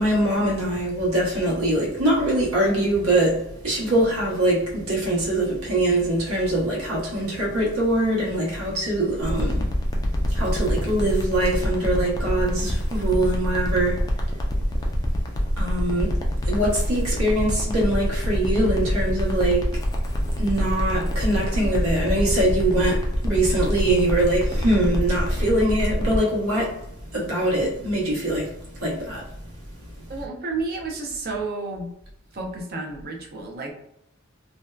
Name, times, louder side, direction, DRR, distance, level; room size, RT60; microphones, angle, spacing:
voice 1, 0.0-29.3 29.7-30.1, right 1 dB, 75° right, 1.0 m, -23 dB
sound 1, 9.2-26.2, equal, 15° left, 0.3 m, -25 dB
voice 2, 30.1-31.9 32.3-33.7, right 3 dB, 45° right, 0.6 m, -31 dB
2.6 x 2.1 x 2.3 m
head